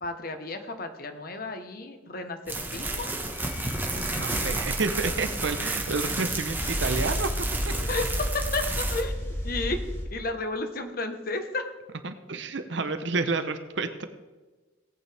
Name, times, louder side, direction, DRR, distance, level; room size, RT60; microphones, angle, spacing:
voice 1, 0.0-3.1 3.9-4.2 7.7-9.8 10.1-11.7, left 3 dB, 50° left, 7 dB, 1.2 m, -33 dB
sound 1, 2.5-9.0, right 2 dB, 10° right, 1.4 m, -31 dB
Wind instrument woodwind instrument, 3.2-7.4, left 10 dB, 75° left, 2.7 m, -49 dB
voice 2, 4.1-7.7 12.0-14.0, right 3 dB, 70° right, 9 dB, 0.8 m, -30 dB
sound 2, 5.7-10.0, equal, 15° left, 2.6 m, -32 dB
17.5 x 8.9 x 3.5 m, 1.2 s
head